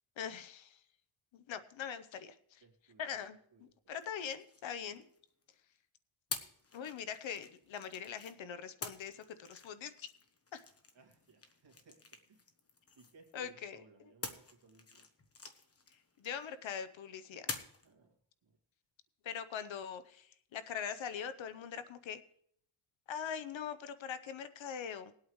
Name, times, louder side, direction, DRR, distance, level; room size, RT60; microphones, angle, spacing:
voice 1, 0.2-0.8 1.3-2.6 3.0-5.0 6.7-10.1 10.5-10.6 13.3-13.8 16.2-17.5 19.2-22.2 23.1-25.1, left 8 dB, 65° left, 12 dB, 0.9 m, -42 dB
voice 2, 2.6-3.1 3.5-3.9 10.9-12.0 12.3-12.5 13.0-15.1 17.8-18.2 18.4-18.6, right 4 dB, 60° right, 2 dB, 2.3 m, -63 dB
sound 1, 4.0-5.4 6.3-8.4 8.8-13.5 14.2-16.7 17.5-17.9, left 4 dB, 30° left, 1.1 m, -48 dB
20.5 x 8.5 x 3.2 m, 0.67 s
wide cardioid pair, 125°, 49 cm